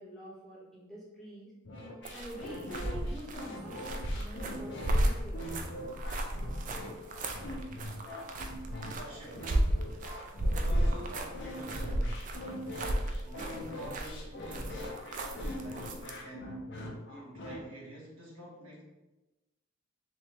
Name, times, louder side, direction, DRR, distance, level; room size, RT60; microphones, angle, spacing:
voice 1, 0.0-1.5 2.1-5.8, right 1 dB, ahead, -8 dB, 1.0 m, -47 dB
sound 1, 1.6-17.6, left 1 dB, 55° left, 0.5 m, -42 dB
sound 2, 2.0-16.2, right 1 dB, 40° right, 0.4 m, -33 dB
voice 2, 8.9-9.5 10.5-12.2 13.1-16.6 17.1-18.8, equal, 80° right, -4 dB, 1.1 m, -47 dB
3.4 x 3.1 x 3.0 m, 1.0 s
head